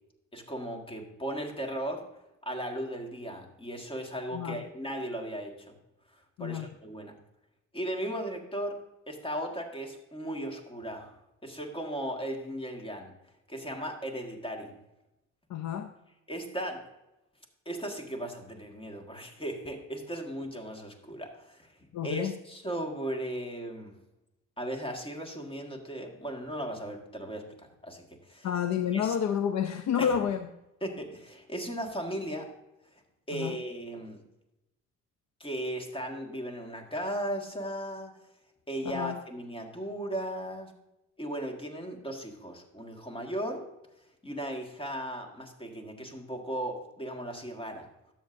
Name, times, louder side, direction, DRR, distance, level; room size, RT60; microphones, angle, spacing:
voice 1, 0.3-2.1 2.4-5.7 6.1-7.2 7.7-13.1 13.5-14.8 16.3-16.9 17.6-21.8 22.0-23.9 24.6-28.5 28.9-29.2 30.0-30.2 30.8-32.5 32.9-33.0 33.3-34.2 35.4-38.2 38.7-40.7 41.2-43.7 44.2-47.9, right 1 dB, 15° left, 3 dB, 1.7 m, -37 dB
voice 2, 4.3-4.6 6.4-6.7 15.5-15.9 21.9-22.4 28.4-30.4 33.3-33.6 38.8-39.2, left 8 dB, 65° left, 9 dB, 0.6 m, -29 dB
12.5 x 7.3 x 2.6 m, 0.93 s
cardioid pair, 90°, 30 cm